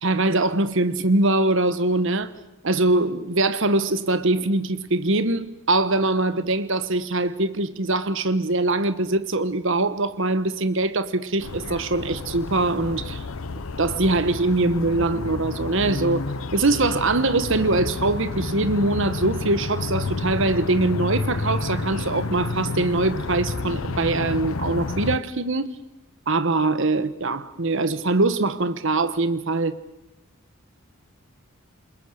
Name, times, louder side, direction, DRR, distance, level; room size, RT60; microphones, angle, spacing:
voice 1, 0.0-2.3 2.6-13.2 13.8-25.8 26.3-29.8, right 2 dB, 60° right, 1.2 m, -23 dB
sound 1, 11.4-25.2, left 3 dB, 70° left, 0.8 m, -30 dB
28.5 x 21.5 x 6.6 m
head